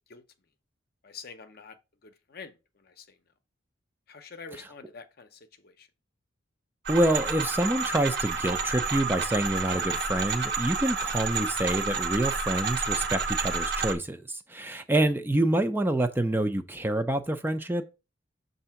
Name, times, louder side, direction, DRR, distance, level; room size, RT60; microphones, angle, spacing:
voice 1, 1.0-1.8 2.0-3.2 4.1-5.9, left 5 dB, 50° left, 0.7 m, -46 dB
voice 2, 6.9-17.9, right 1 dB, 10° right, 0.4 m, -27 dB
sound 1, 6.9-14.0, right 4 dB, 60° right, 0.9 m, -30 dB
6.6 x 2.6 x 5.6 m
head